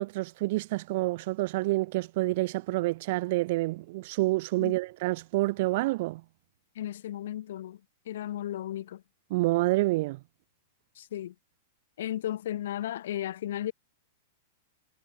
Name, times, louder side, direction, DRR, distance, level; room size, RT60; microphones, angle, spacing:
voice 1, 0.0-6.2 9.3-10.2, right 20 dB, 55° right, 3.2 m, -28 dB
voice 2, 6.8-7.8 8.1-9.0 11.0-11.3 12.0-13.7, left 12 dB, 70° left, 7.7 m, -34 dB
hypercardioid pair, 145°, 0 cm